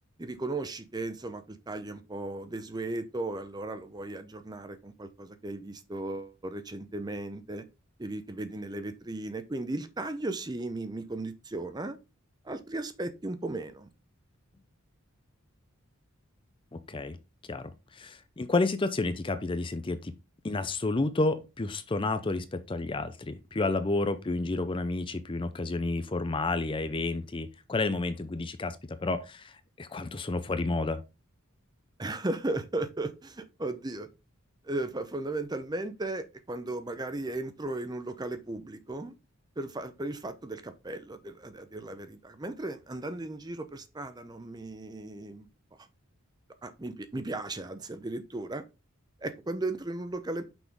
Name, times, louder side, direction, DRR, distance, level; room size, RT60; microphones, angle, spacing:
voice 1, 0.2-7.6 8.0-12.0 12.4-13.9 32.0-34.1 34.6-39.1 39.6-45.5 46.6-48.6 49.2-50.5, right 2 dB, 20° right, 0.6 m, -36 dB
voice 2, 17.5-20.1 20.4-29.5 29.8-31.0, left 2 dB, 25° left, 0.5 m, -30 dB
6.1 x 5.6 x 3.5 m
head